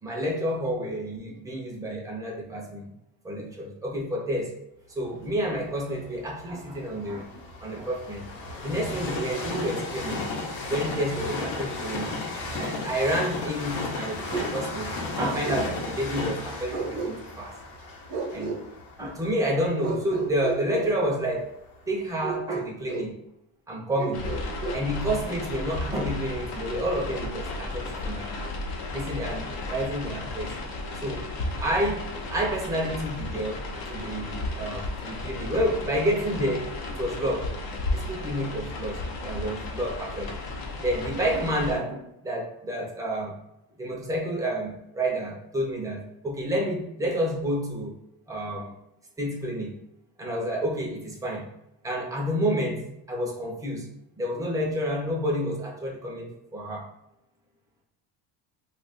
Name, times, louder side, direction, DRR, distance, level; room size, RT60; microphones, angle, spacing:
voice 1, 0.0-2.9 3.2-4.6 5.0-8.3 8.6-10.3 10.7-12.2 12.6-17.5 18.3-18.5 19.0-21.5 21.9-23.1 23.7-24.3 24.7-28.3 28.9-30.6 30.9-31.2 31.6-33.6 33.9-37.5 37.9-40.3 40.8-43.4 43.8-47.9 48.3-48.7 49.2-49.8 50.2-51.5 51.8-53.9 54.2-56.9, equal, 10° right, -1 dB, 0.5 m, -29 dB
Train, 5.3-21.2 21.8-21.9, left 3 dB, 85° left, 0.9 m, -35 dB
Bark, 14.3-14.6 15.4-15.7 16.7-17.4 18.1-18.6 19.8-21.0 22.2-23.1 24.0-24.8, right 3 dB, 65° right, 0.8 m, -32 dB
sound 1, 24.1-41.8, left 2 dB, 50° left, 0.7 m, -34 dB
2.7 x 2.4 x 4.1 m, 0.83 s
cardioid pair, 170°, 45 cm